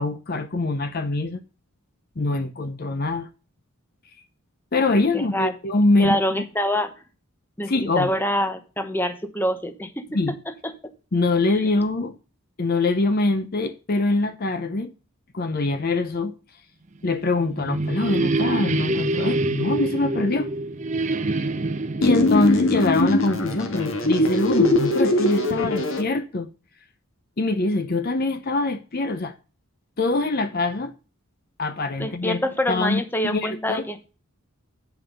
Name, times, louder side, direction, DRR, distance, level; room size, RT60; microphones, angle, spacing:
voice 1, 0.0-1.4 2.2-3.3 4.7-6.2 7.7-8.1 10.1-10.4 11.1-12.2 12.6-14.9 15.3-16.3 17.0-20.5 22.0-26.5 27.4-29.3 30.0-30.9 31.6-32.4 32.7-33.9, left 2 dB, 45° left, 0.7 m, -23 dB
voice 2, 5.1-5.5 6.0-6.9 7.6-10.7 11.5-11.6 32.0-34.1, left 1 dB, 10° left, 0.9 m, -26 dB
sound 1, 17.1-23.8, right 2 dB, 35° right, 0.7 m, -26 dB
sound 2, 22.0-26.0, left 1 dB, 60° left, 1.7 m, -21 dB
9.1 x 5.5 x 5.2 m
head